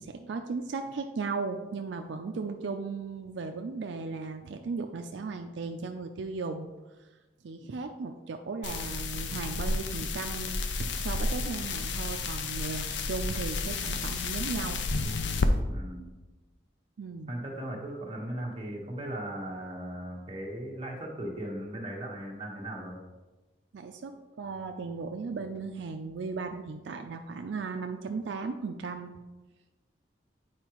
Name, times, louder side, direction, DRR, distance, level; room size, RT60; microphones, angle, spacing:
voice 1, 0.0-6.7 7.4-14.8 17.0-17.3 23.7-29.1, right 4 dB, 85° right, 5 dB, 0.4 m, -36 dB
sound 1, 8.6-15.5, left 3 dB, 85° left, 0.5 m, -31 dB
voice 2, 15.7-16.1 17.3-23.0, right 1 dB, 35° right, -2 dB, 1.3 m, -37 dB
8.9 x 4.7 x 3.0 m, 1.2 s
head